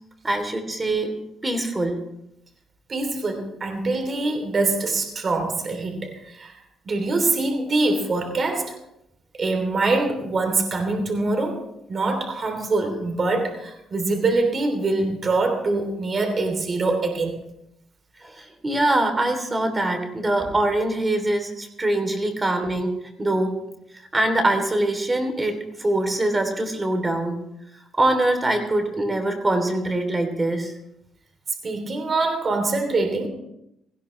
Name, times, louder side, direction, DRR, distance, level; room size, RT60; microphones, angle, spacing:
voice 1, 0.2-1.1 1.4-2.0 18.2-23.6 24.1-27.4 27.9-30.7, right 1 dB, 20° right, 6 dB, 3.2 m, -23 dB
voice 2, 2.9-6.5 6.8-8.8 9.4-11.6 11.9-17.3 31.6-33.3, right 3 dB, 40° right, 5 dB, 3.2 m, -24 dB
18.0 x 15.5 x 3.3 m, 0.81 s
cardioid pair, 90°, 0 cm